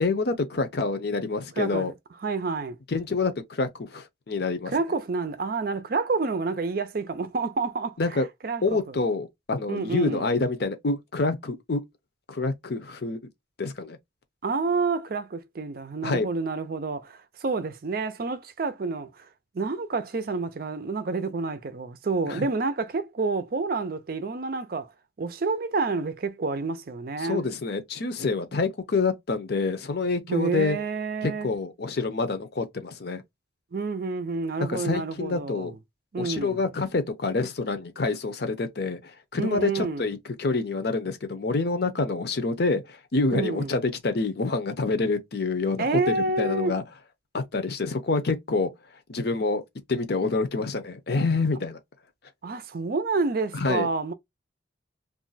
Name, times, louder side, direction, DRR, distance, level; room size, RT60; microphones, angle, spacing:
voice 1, 0.0-1.9 2.9-4.7 8.0-8.3 8.6-11.8 12.3-13.2 13.6-14.0 16.0-16.3 22.3-22.5 27.2-30.8 31.2-33.2 34.6-35.7 36.2-46.8 47.3-48.7 49.1-49.6 49.9-51.8 53.5-53.9, left 3 dB, 60° left, 0.6 m, -27 dB
voice 2, 1.6-1.9 2.2-2.8 4.7-9.0 9.7-10.2 14.4-19.3 19.5-24.9 25.2-27.5 30.3-31.5 33.7-35.7 36.1-36.6 39.4-40.0 43.3-43.8 45.8-46.8 52.4-54.1, right 3 dB, 50° right, 0.5 m, -29 dB
2.5 x 2.1 x 3.9 m
head